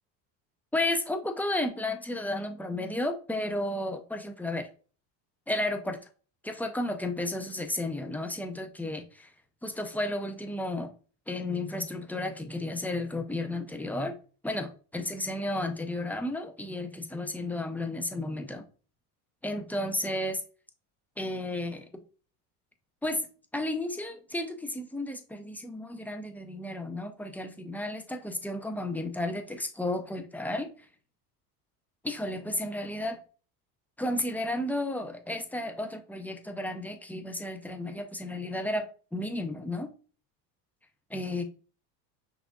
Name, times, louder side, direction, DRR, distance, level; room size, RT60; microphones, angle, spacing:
voice 1, 0.7-4.7 5.5-6.0 6.4-9.3 9.6-10.9 11.3-14.2 14.4-18.6 19.4-20.4 21.2-21.9 23.0-23.3 23.5-30.7 32.0-33.2 34.0-39.9 41.1-41.4, left 1 dB, 5° left, 0.5 m, -33 dB
5.9 x 2.6 x 2.3 m
supercardioid pair, 95°, 46 cm